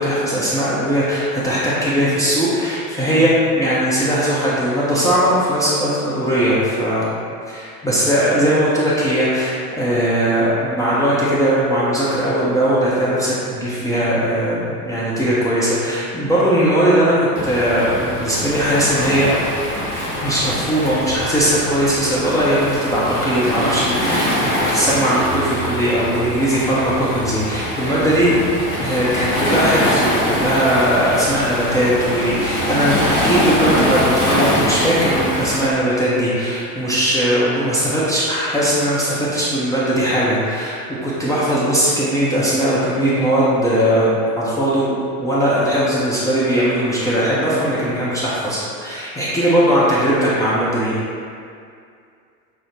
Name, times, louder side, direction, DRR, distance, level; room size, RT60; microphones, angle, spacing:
voice 1, 0.0-7.2 7.5-17.1 17.4-19.3 20.2-28.4 28.8-51.0, equal, 10° left, -9 dB, 0.5 m, -19 dB
Waves surf, 17.3-35.7, equal, 90° left, 0.9 m, -23 dB
5.7 x 2.0 x 3.2 m, 2.3 s
figure-of-eight pair, 75°, 44 cm